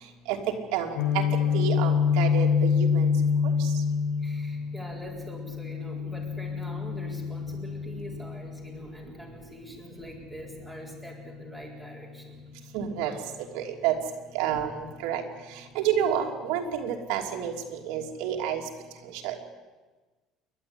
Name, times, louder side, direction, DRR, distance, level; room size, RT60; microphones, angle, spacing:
voice 1, 0.7-1.2 1.5-3.1 12.7-13.1 13.5-14.0 14.3-15.2 15.7-18.6 19.2-19.4, right 9 dB, 85° right, 2 dB, 2.9 m, -29 dB
Guitar, 1.0-8.8, left 6 dB, 55° left, 2.4 m, -26 dB
voice 2, 4.2-12.4, equal, 5° left, -1 dB, 4.2 m, -44 dB
28.5 x 11.5 x 9.9 m, 1.3 s
cardioid pair, 175°, 0 cm